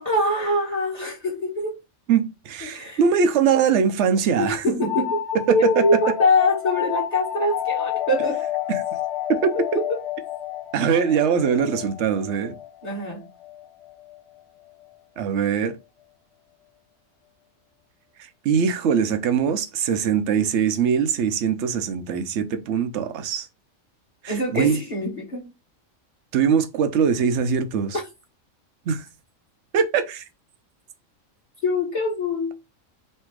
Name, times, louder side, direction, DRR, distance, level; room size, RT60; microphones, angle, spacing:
voice 1, 0.0-1.7 2.6-3.0 4.4-8.4 9.7-10.0 12.8-13.2 24.3-25.5 31.6-32.5, left 1 dB, 30° left, 1.3 m, -24 dB
voice 2, 2.1-4.6 5.5-5.6 8.7-8.8 9.3-9.8 10.7-12.6 15.2-15.8 18.2-23.5 24.2-24.8 26.3-28.0 28.9-29.1 29.7-30.2, right 7 dB, 65° right, 0.9 m, -22 dB
sound 1, 4.8-14.2, left 12 dB, 65° left, 0.9 m, -30 dB
3.2 x 2.7 x 4.5 m
omnidirectional pair, 1.4 m